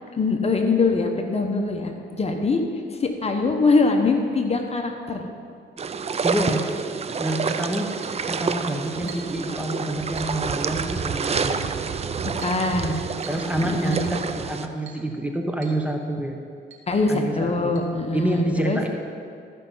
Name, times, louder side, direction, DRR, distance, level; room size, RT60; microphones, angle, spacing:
voice 1, 0.1-2.6 3.0-5.3 9.0-9.1 12.2-13.0 13.6-14.1 16.9-18.8, left 3 dB, 30° left, 3 dB, 1.1 m, -23 dB
sound 1, 5.8-14.7, right 5 dB, 30° right, 0.5 m, -28 dB
voice 2, 6.2-6.7 7.2-7.9 8.3-11.6 12.8-13.0 13.3-16.3 17.1-17.8 18.1-18.9, right 1 dB, 5° right, 2 dB, 1.0 m, -27 dB
Chink clink, 8.0-8.2 9.1-9.4 10.2-10.4 11.3-11.5 12.4-12.6 13.2-13.5 13.9-14.1 14.9-15.1 15.6-15.8 16.1-16.2 16.7-16.9 17.8-17.9, right 6 dB, 75° right, 1.6 m, -44 dB
13.5 x 5.6 x 5.6 m, 2.3 s
cardioid pair, 90°, 20 cm